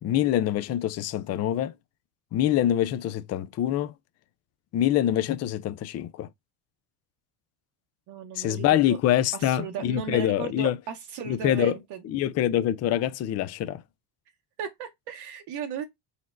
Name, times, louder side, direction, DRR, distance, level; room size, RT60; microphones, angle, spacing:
voice 1, 0.0-1.7 2.3-3.9 4.7-6.3 8.4-10.8 11.3-11.7 12.0-13.8, left 12 dB, 35° left, 0.4 m, -25 dB
voice 2, 8.1-9.0 9.3-12.0 14.6-15.8, right 8 dB, 60° right, 0.9 m, -35 dB
4.3 x 4.1 x 2.4 m
cardioid pair, 150°, 46 cm